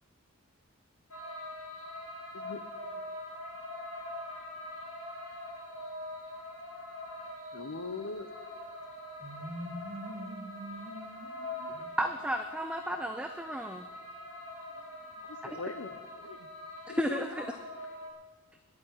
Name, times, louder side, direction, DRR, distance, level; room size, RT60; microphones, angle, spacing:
sound 1, 1.1-18.1, left 1 dB, 90° left, 3.4 m, -43 dB
voice 1, 7.5-8.3 15.2-16.5 16.9-17.2 17.5-17.6, left 3 dB, 75° left, 12 dB, 0.9 m, -41 dB
voice 2, 9.2-12.0 14.7-14.8, right 1 dB, 40° right, 5 dB, 1.4 m, -44 dB
voice 3, 12.0-13.9 16.9-17.5, right 1 dB, 5° right, 6 dB, 0.5 m, -33 dB
11.0 x 8.7 x 10.0 m, 1.4 s
head